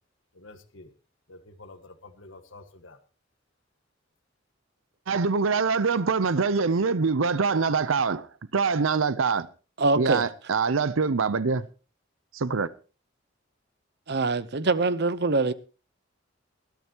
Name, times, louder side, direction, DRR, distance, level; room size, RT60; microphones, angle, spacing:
voice 1, 0.3-0.9 1.3-3.0, left 2 dB, 70° left, 1.6 m, -48 dB
voice 2, 5.1-8.3 8.5-9.5 9.9-11.7 12.3-12.7, right 5 dB, 85° right, 0.7 m, -24 dB
voice 3, 9.8-10.2 14.1-15.5, right 3 dB, 55° right, 0.8 m, -24 dB
21.0 x 13.0 x 3.0 m
head